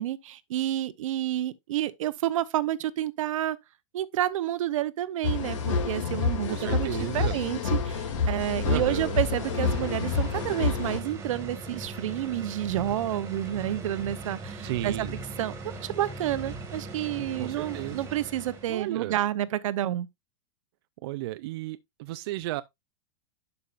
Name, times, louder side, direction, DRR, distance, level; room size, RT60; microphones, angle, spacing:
voice 1, 0.0-3.6 3.9-15.1 15.4-20.1, right 13 dB, 75° right, 0.8 m, -30 dB
sound 1, 5.2-11.0, left 5 dB, 65° left, 2.5 m, -28 dB
voice 2, 6.5-7.4 8.6-9.2 14.6-15.2 17.4-18.0 18.7-19.2 21.0-22.6, right 16 dB, 50° right, 0.4 m, -34 dB
sound 2, 8.9-18.9, right 2 dB, 15° right, 1.8 m, -39 dB
11.0 x 5.4 x 2.5 m
supercardioid pair, 165°, 17 cm